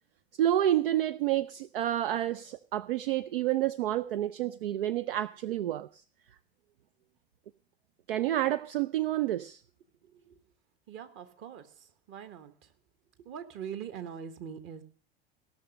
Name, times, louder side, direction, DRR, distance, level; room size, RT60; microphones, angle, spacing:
voice 1, 0.4-5.9 8.1-9.6, right 12 dB, 70° right, 0.5 m, -29 dB
voice 2, 10.9-12.5 13.2-14.8, right 8 dB, 40° right, 1.4 m, -43 dB
17.0 x 6.3 x 6.4 m
figure-of-eight pair, 80°, 29 cm